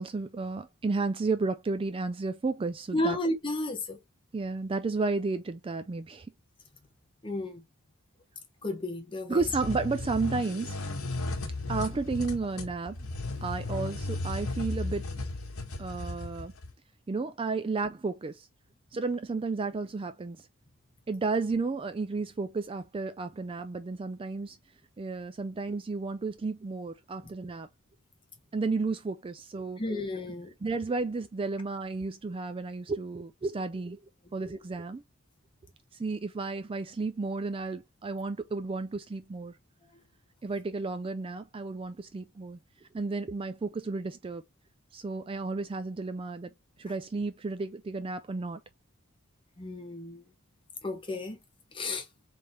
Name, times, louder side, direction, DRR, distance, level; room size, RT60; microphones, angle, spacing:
voice 1, 0.0-3.2 4.3-6.3 9.3-10.8 11.7-13.0 13.4-15.0 15.8-16.5 17.1-18.5 18.9-20.4 21.1-24.6 25.0-27.7 28.5-29.8 30.6-34.0 34.3-35.0 36.0-39.5 40.4-42.6 42.9-44.4 44.9-46.5 46.8-48.6, right 3 dB, 25° right, 0.3 m, -32 dB
voice 2, 2.9-4.0 7.2-7.6 8.6-9.4 29.8-30.5 49.6-50.2 50.8-51.4 51.7-52.0, left 1 dB, 25° left, 1.0 m, -32 dB
sound 1, 9.4-16.7, left 2 dB, 80° left, 1.3 m, -35 dB
4.0 x 3.4 x 3.2 m
head